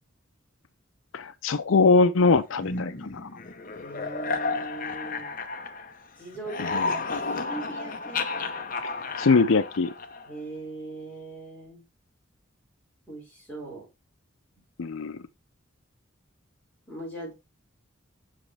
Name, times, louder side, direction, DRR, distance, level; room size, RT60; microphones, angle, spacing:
voice 1, 1.1-3.3 6.6-6.9 9.2-9.9 14.8-15.2, left 4 dB, 85° left, 0.5 m, -22 dB
sound 1, 2.6-6.1 6.3-10.4, left 4 dB, 45° left, 0.8 m, -32 dB
voice 2, 3.8-5.4 6.2-7.0 7.4-8.6 10.2-11.9 13.1-13.9 16.9-17.3, right 2 dB, 10° left, 5.5 m, -40 dB
7.5 x 6.0 x 3.4 m
head